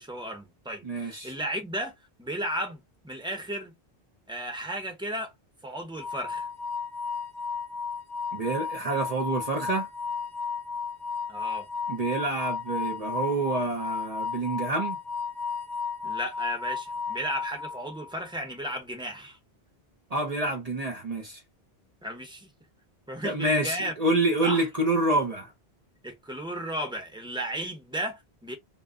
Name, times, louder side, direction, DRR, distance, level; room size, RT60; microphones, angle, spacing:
voice 1, 0.0-1.9 2.2-3.7 4.3-5.3 5.6-6.5 11.3-11.7 16.0-19.4 22.0-22.5 23.1-23.9 24.4-24.7 26.0-28.5, right 1 dB, 5° right, 0.7 m, -34 dB
voice 2, 0.8-1.3 8.3-9.9 11.9-15.0 20.1-21.4 23.2-25.5, right 2 dB, 45° right, 0.6 m, -27 dB
sound 1, 6.0-18.2, left 5 dB, 70° left, 0.9 m, -34 dB
2.1 x 2.0 x 3.6 m
omnidirectional pair, 1.1 m